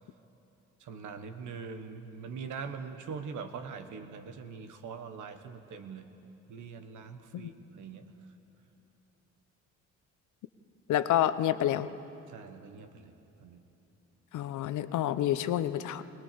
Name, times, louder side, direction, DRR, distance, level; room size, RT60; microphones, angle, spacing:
voice 1, 0.8-6.1 6.5-8.2 12.3-13.1 13.4-13.6, right 5 dB, 80° right, 8 dB, 1.4 m, -42 dB
voice 2, 10.9-11.9 14.3-16.0, left 12 dB, 75° left, 13 dB, 0.8 m, -28 dB
21.5 x 19.0 x 7.0 m, 3.0 s
cardioid pair, 90°, 30 cm